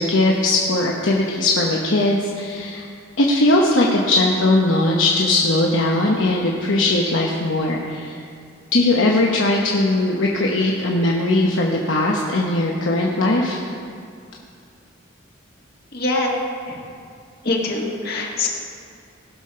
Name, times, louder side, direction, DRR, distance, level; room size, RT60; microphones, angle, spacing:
voice 1, 0.0-2.9 3.2-8.2 8.7-13.6, left 2 dB, 70° left, -2 dB, 1.0 m, -19 dB
voice 2, 15.9-16.3 16.7-16.8 17.4-18.5, left 2 dB, 50° left, -1 dB, 1.9 m, -23 dB
18.0 x 6.8 x 5.5 m, 2.3 s
head